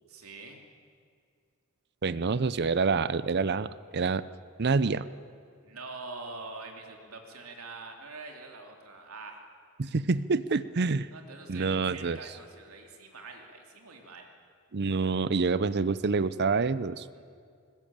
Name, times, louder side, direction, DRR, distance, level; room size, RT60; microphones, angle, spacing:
voice 1, 0.1-0.6 5.6-9.4 11.1-14.3 17.1-17.2, right 3 dB, 75° right, 2 dB, 3.1 m, -44 dB
voice 2, 2.0-3.7 3.9-4.2 4.6-5.1 9.8-11.1 11.5-12.2 14.7-17.1, right 4 dB, 50° right, 16 dB, 0.6 m, -27 dB
20.5 x 20.0 x 9.0 m, 2.2 s
head